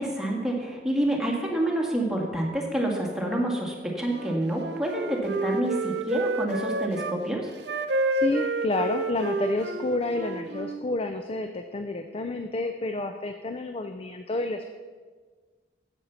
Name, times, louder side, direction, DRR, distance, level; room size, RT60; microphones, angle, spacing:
voice 1, 0.0-7.5, right 1 dB, 5° right, -2 dB, 1.7 m, -28 dB
Wind instrument woodwind instrument, 4.0-7.2 7.6-10.8, right 3 dB, 70° right, 0.6 m, -30 dB
voice 2, 8.1-14.7, left 2 dB, 35° left, 7 dB, 0.5 m, -30 dB
8.9 x 8.2 x 5.8 m, 1.4 s
head